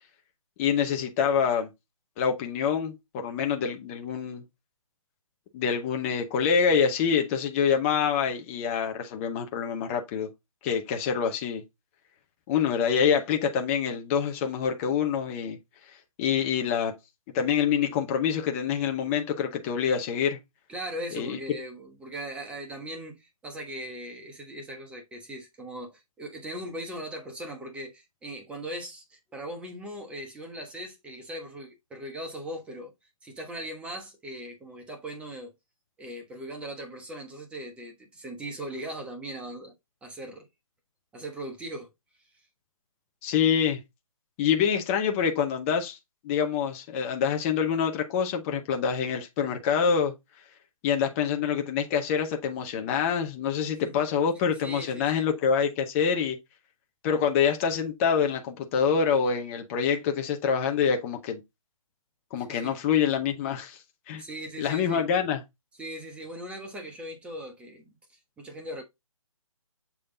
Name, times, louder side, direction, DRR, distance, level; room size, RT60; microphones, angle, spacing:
voice 1, 0.6-1.7 2.2-4.4 5.5-10.3 10.6-11.6 12.5-15.6 16.2-16.9 17.3-20.4 21.1-21.4 43.2-43.8 44.4-46.0 46.2-50.1 50.8-56.4 57.0-61.4 62.3-63.8 64.1-64.2 64.6-65.4, left 7 dB, 25° left, 0.9 m, -26 dB
voice 2, 20.7-32.9 33.2-35.5 36.0-39.7 40.0-40.5 41.1-41.9 42.3-42.4 53.7-54.1 54.6-55.3 62.4-62.7 64.2-65.1 65.8-67.9 68.4-68.8, right 1 dB, 5° right, 1.2 m, -39 dB
7.1 x 3.4 x 3.9 m
figure-of-eight pair, 145°, 18 cm